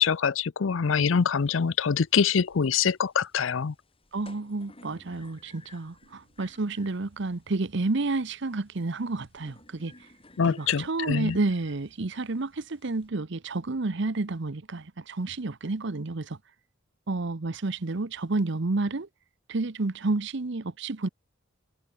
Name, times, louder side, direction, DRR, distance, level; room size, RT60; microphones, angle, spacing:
voice 1, 0.0-3.7 10.4-11.4, left 6 dB, 90° left, 0.6 m, -24 dB
sound 1, 0.8-13.1, left 2 dB, 30° left, 4.9 m, -58 dB
voice 2, 4.1-9.9 10.4-16.4 17.1-19.1 19.5-21.1, right 3 dB, 65° right, 0.9 m, -30 dB
head